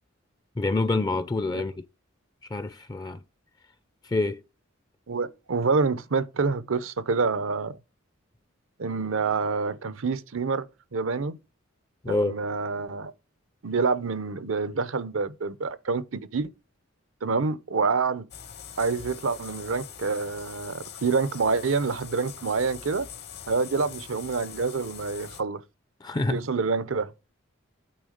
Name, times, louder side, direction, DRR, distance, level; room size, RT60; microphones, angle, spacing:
voice 1, 0.6-1.8 2.5-3.2 4.0-4.4 12.0-12.3 26.0-26.5, left 2 dB, 20° left, 0.4 m, -27 dB
voice 2, 5.1-7.8 8.8-10.6 10.9-11.4 12.1-13.1 13.6-16.5 17.2-18.3 18.8-23.1 23.5-25.6 26.3-27.1, right 4 dB, 80° right, 0.7 m, -27 dB
sound 1, 18.3-25.4, left 8 dB, 55° left, 0.9 m, -43 dB
8.8 x 3.6 x 6.5 m
head